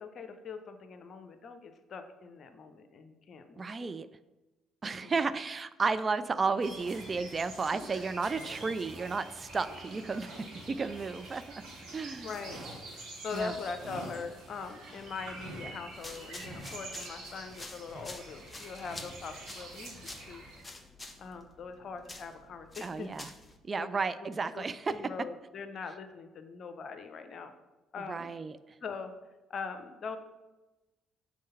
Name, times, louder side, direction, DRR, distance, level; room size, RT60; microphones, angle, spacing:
voice 1, 0.0-3.9 5.0-5.2 12.2-12.6 13.2-20.4 21.2-23.1 23.8-23.9 24.5-27.5 27.9-28.3 28.8-29.1 29.5-30.2, left 5 dB, 45° left, 8 dB, 0.7 m, -42 dB
voice 2, 3.6-4.1 4.8-11.4 11.9-12.3 13.3-13.5 22.8-23.3 23.7-24.9 28.1-28.6, right 4 dB, 30° right, 12 dB, 0.3 m, -33 dB
sound 1, 6.6-20.6, right 2 dB, 60° right, 2.4 m, -46 dB
sound 2, 15.9-23.6, left 2 dB, 20° left, 0.9 m, -48 dB
6.3 x 4.2 x 5.6 m, 1.1 s
figure-of-eight pair, 45°, 0 cm